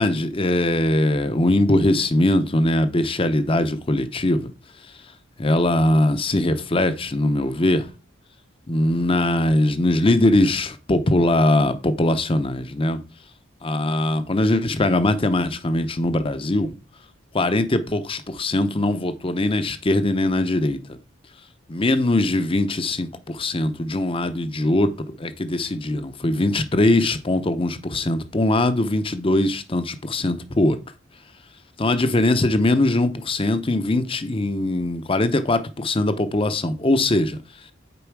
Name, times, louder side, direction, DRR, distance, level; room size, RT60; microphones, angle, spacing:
voice 1, 0.0-4.5 5.4-7.9 8.7-13.0 13.6-16.7 17.3-21.0 21.7-24.9 25.2-30.8 31.8-37.4, left 1 dB, 30° left, 0.7 m, -21 dB
7.0 x 4.8 x 4.7 m
head